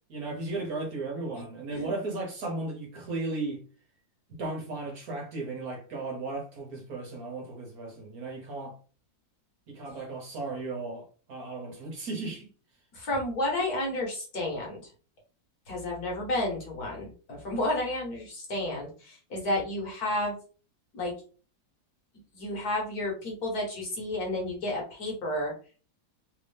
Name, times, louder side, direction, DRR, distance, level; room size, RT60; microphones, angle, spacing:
voice 1, 0.1-3.6 4.3-8.7 9.7-12.5, right 3 dB, 60° right, 1.3 m, -35 dB
voice 2, 12.9-14.8 15.7-20.4 20.9-21.1 22.3-25.5, left 1 dB, 55° left, 1.5 m, -31 dB
3.4 x 2.6 x 3.3 m
omnidirectional pair, 2.0 m